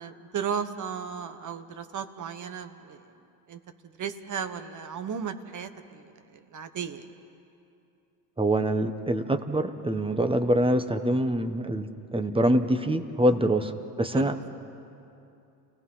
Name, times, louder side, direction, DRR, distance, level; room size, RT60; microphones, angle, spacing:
voice 1, 0.0-3.0 3.5-3.6 4.0-7.0 14.1-14.4, right 7 dB, 40° right, 9 dB, 1.5 m, -35 dB
voice 2, 8.4-14.4, right 1 dB, 10° right, 9 dB, 1.3 m, -25 dB
29.5 x 18.0 x 5.7 m, 2.7 s
hypercardioid pair, 75°, 47 cm